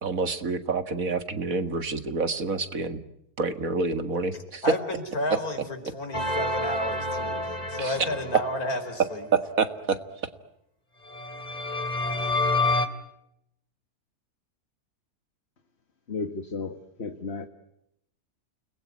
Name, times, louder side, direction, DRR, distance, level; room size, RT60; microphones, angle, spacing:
voice 1, 0.0-3.0 3.4-4.6 7.8-7.9 9.3-10.0, right 4 dB, 60° right, 10 dB, 2.2 m, -28 dB
voice 2, 4.6-5.6 5.9-9.2, left 1 dB, 65° left, 8 dB, 5.1 m, -32 dB
sound 1, 6.1-8.8 11.1-12.9, left 2 dB, 25° left, 2.7 m, -28 dB
voice 3, 16.1-17.5, left 4 dB, 45° left, 8 dB, 2.0 m, -34 dB
30.0 x 21.0 x 9.6 m, 0.79 s
omnidirectional pair, 1.6 m